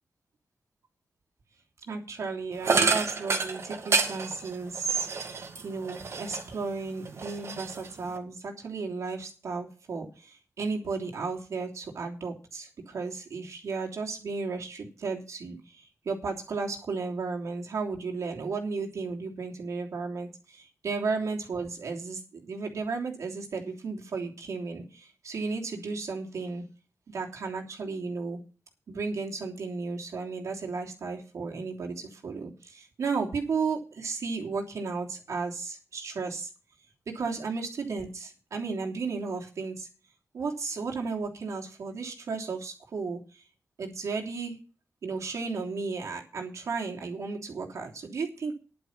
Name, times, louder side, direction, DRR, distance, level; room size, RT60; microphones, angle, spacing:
voice 1, 1.9-5.1 5.6-26.6 27.1-28.4 28.9-36.5 37.1-39.9 40.3-43.4 43.8-44.6 45.0-48.5, right 4 dB, 80° right, 1 dB, 3.1 m, -34 dB
sound 1, 2.6-6.6 7.0-8.2, right 4 dB, 60° right, 2.4 m, -29 dB
11.0 x 9.9 x 5.8 m, 0.36 s
wide cardioid pair, 130°, 5 cm